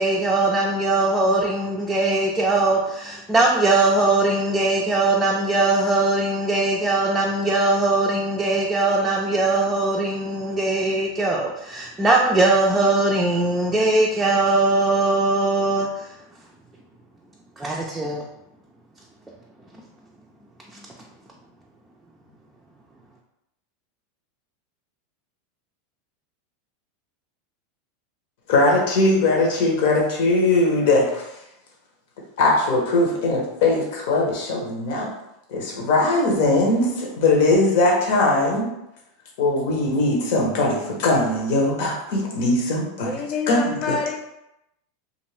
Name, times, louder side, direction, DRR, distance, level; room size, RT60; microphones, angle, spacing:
voice 1, 0.0-16.1 17.6-18.2, right 2 dB, 15° right, -3 dB, 0.4 m, -20 dB
voice 2, 28.5-31.4 32.4-35.1 35.5-38.7 39.4-43.1 43.5-44.0, left 2 dB, 70° left, -2 dB, 1.0 m, -20 dB
voice 3, 43.0-44.2, left 5 dB, 40° left, 3 dB, 0.5 m, -27 dB
2.5 x 2.5 x 3.2 m, 0.86 s
hypercardioid pair, 110°, 0 cm